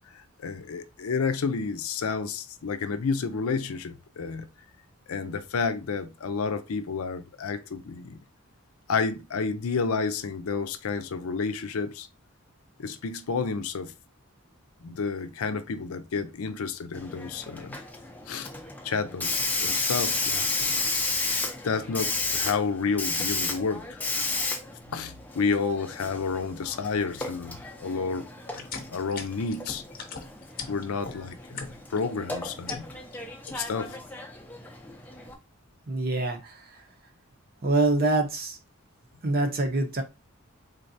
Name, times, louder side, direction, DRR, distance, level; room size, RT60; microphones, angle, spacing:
voice 1, 0.1-4.5 5.1-8.2 8.9-12.1 12.8-13.9 14.8-17.8 18.3-18.5 18.8-20.8 21.6-24.0 24.9-28.3 28.5-29.8 30.7-32.9 33.5-34.0, left 5 dB, 80° left, 0.5 m, -30 dB
Hiss, 16.9-35.3, left 3 dB, 10° left, 0.5 m, -33 dB
sound 1, 28.5-32.0 32.4-33.2 33.5-33.9, left 5 dB, 40° left, 0.7 m, -39 dB
voice 2, 35.9-36.8 37.6-38.6 39.2-40.0, right 2 dB, 45° right, 0.8 m, -25 dB
3.9 x 3.2 x 2.6 m
head